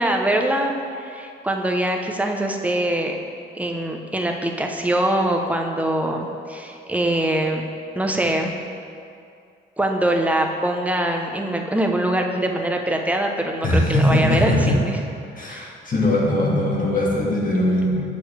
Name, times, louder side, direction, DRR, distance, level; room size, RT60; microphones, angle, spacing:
voice 1, 0.0-3.2 3.5-7.6 8.0-8.5 9.8-15.0 15.5-15.7, right 1 dB, 5° right, 2 dB, 0.7 m, -23 dB
voice 2, 13.6-14.8 15.4-18.0, left 1 dB, 45° left, -4 dB, 1.9 m, -20 dB
7.8 x 6.9 x 3.3 m, 2.4 s
cardioid pair, 90°, 20 cm